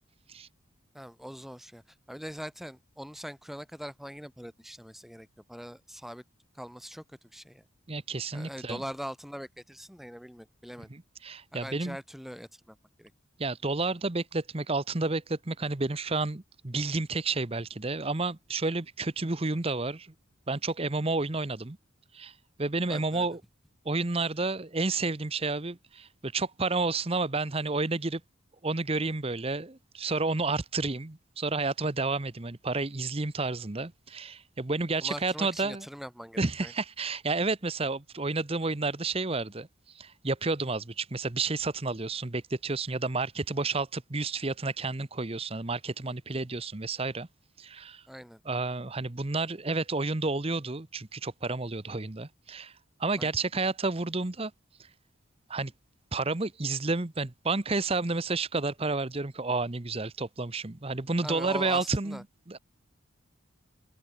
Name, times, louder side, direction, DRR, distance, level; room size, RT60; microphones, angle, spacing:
voice 1, 0.9-1.8 2.1-6.2 6.5-7.6 8.3-10.9 11.5-13.1 22.9-23.3 35.0-36.7 48.1-48.4 53.2-53.3 61.2-62.2, equal, ahead, 2.9 m, -42 dB
voice 2, 7.9-8.8 10.9-12.0 13.4-20.1 20.5-21.8 22.1-22.3 22.6-23.4 23.8-28.2 28.6-35.9 36.4-39.7 39.9-47.3 47.6-48.0 48.4-52.7 53.0-54.5 55.5-55.7 56.1-62.6, right 3 dB, 30° right, 0.9 m, -31 dB
open air
head